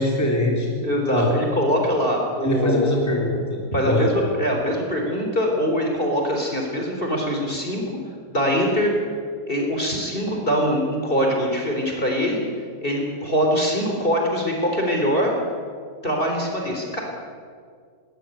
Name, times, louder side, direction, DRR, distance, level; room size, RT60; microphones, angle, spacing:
voice 1, 0.0-1.3 2.4-4.1, left 1 dB, 5° left, -1 dB, 3.4 m, -23 dB
voice 2, 0.8-2.9 3.7-7.8 8.3-8.9 9.5-12.4 12.8-15.3 16.0-17.0, equal, 25° left, 1 dB, 3.9 m, -23 dB
20.0 x 20.0 x 9.1 m, 2.1 s
omnidirectional pair, 2.3 m